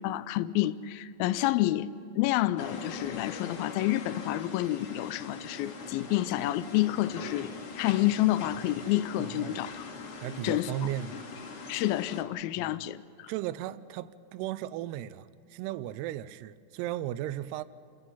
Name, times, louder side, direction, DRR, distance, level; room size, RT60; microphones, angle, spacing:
voice 1, 0.0-7.5 7.8-9.8 10.4-10.7 11.7-13.3, left 15 dB, 85° left, 2.1 m, -29 dB
sound 1, 2.6-12.2, left 4 dB, 50° left, 2.0 m, -42 dB
voice 2, 9.2-9.7 10.2-11.3 12.6-12.9 13.3-17.6, right 13 dB, 80° right, 2.6 m, -36 dB
29.0 x 17.0 x 5.6 m
omnidirectional pair, 4.9 m